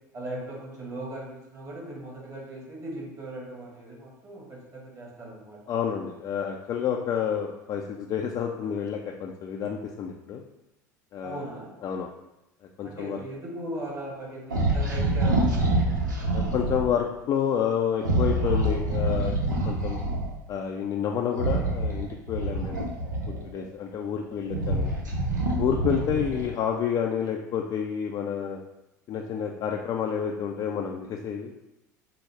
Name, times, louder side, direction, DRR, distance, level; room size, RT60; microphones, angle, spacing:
voice 1, 0.1-5.6 11.2-11.7 12.8-16.5 25.9-26.0, right 1 dB, 35° right, -3 dB, 1.5 m, -39 dB
voice 2, 5.7-10.4 11.1-11.5 11.8-12.1 12.8-13.2 16.3-19.3 19.7-20.0 20.5-22.9 23.4-24.9 25.6-28.6 29.1-31.5, left 8 dB, 40° left, 1 dB, 0.3 m, -29 dB
sound 1, 14.5-16.8 18.0-20.3 21.3-23.6 24.2-26.6, right 2 dB, 90° right, 0.6 m, -26 dB
4.6 x 2.0 x 3.3 m, 0.95 s
hypercardioid pair, 75°, 10 cm